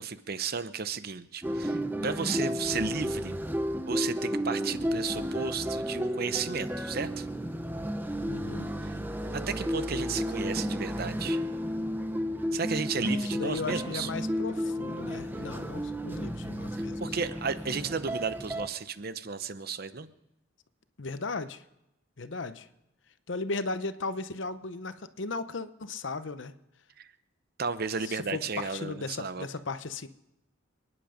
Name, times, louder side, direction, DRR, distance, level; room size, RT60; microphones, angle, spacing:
voice 1, 0.0-3.3 3.9-7.3 8.8-8.9 9.3-11.4 12.5-14.1 17.0-20.1 27.0-27.1 27.6-29.5, right 5 dB, 50° right, 13 dB, 0.8 m, -33 dB
sound 1, 1.4-18.7, equal, 10° right, 0.7 m, -32 dB
voice 2, 8.3-8.7 13.0-17.0 21.0-21.6 22.2-22.7 23.3-26.5 28.1-30.1, left 3 dB, 65° left, 12 dB, 0.8 m, -36 dB
27.5 x 10.0 x 5.1 m, 0.88 s
head